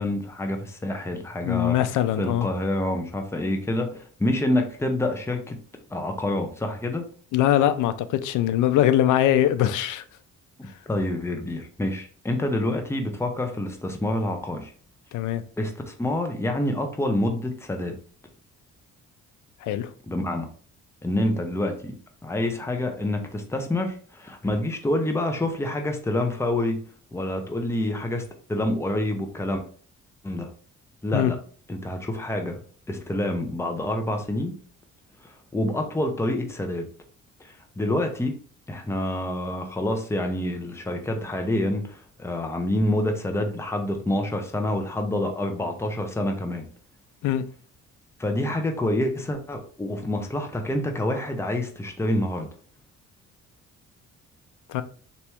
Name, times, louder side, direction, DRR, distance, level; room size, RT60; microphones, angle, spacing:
voice 1, 0.0-1.8 2.2-5.6 5.9-7.1 10.6-14.7 15.6-18.0 20.1-20.5 21.0-21.9 22.2-26.8 27.1-29.6 30.2-30.5 31.0-31.4 31.7-32.6 32.9-34.5 35.2-36.9 37.4-38.3 38.7-46.6 48.2-52.5, left 1 dB, 10° left, 0.7 m, -27 dB
voice 2, 1.4-2.5 7.3-10.0 15.1-15.4 19.6-19.9 31.1-31.3 47.2-47.4 54.7-54.8, left 12 dB, 80° left, 0.5 m, -22 dB
4.2 x 3.0 x 3.5 m
cardioid pair, 90°, 30 cm